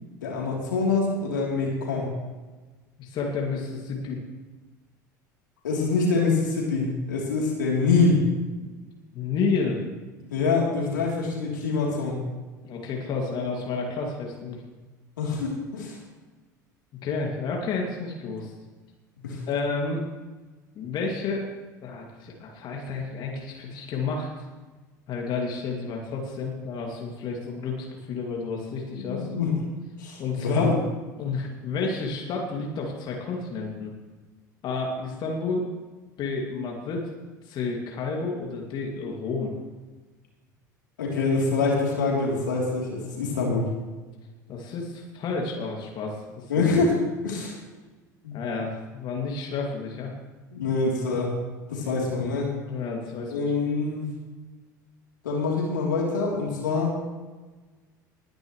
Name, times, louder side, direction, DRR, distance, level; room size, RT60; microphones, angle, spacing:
voice 1, 0.2-2.1 5.6-8.2 10.3-12.2 15.2-16.0 19.2-19.4 28.9-29.5 30.0-30.7 41.0-43.7 46.5-47.0 47.2-47.5 48.2-48.4 50.5-51.3 51.7-52.5 53.3-54.0 55.2-56.9, left 4 dB, 75° left, -2 dB, 3.3 m, -25 dB
voice 2, 3.0-4.2 9.1-9.8 12.6-14.6 17.0-18.5 19.5-20.0 20.8-21.4 21.8-24.4 25.1-29.3 30.2-30.7 31.2-33.9 34.6-35.7 36.2-37.0 37.4-39.5 44.5-46.7 48.3-50.1 52.7-53.5, left 4 dB, 45° left, -1 dB, 2.4 m, -30 dB
20.0 x 10.5 x 3.2 m, 1.3 s
figure-of-eight pair, 70°, 10 cm